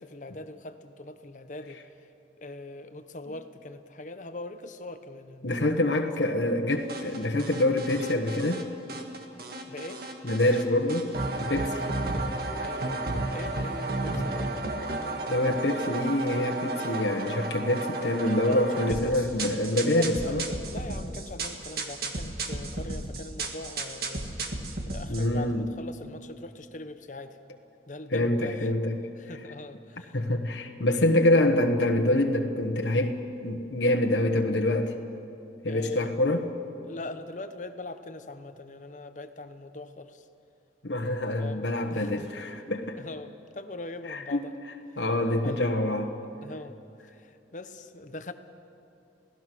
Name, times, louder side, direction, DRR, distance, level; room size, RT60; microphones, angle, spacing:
voice 1, 0.0-1.8 2.4-6.3 9.7-10.0 12.6-13.1 13.3-14.5 18.2-19.4 19.8-20.4 20.7-24.3 24.9-27.4 27.9-28.7 29.2-30.2 35.7-36.1 36.8-40.3 41.4-42.3 43.0-44.5 44.9-45.0 45.4-45.6 46.4-46.8 47.1-48.3, left 2 dB, 45° left, 9 dB, 0.9 m, -41 dB
voice 2, 5.4-8.6 10.2-11.1 11.4-11.8 15.3-20.4 25.1-25.6 28.1-29.1 30.1-34.9 35.6-36.4 40.8-43.0 44.1-44.5 45.0-46.1, left 1 dB, 85° left, 2 dB, 1.4 m, -26 dB
sound 1, 6.9-8.6 8.9-10.6 10.9-25.3, right 2 dB, 60° right, 1.8 m, -33 dB
28.0 x 17.0 x 6.2 m, 2.7 s
head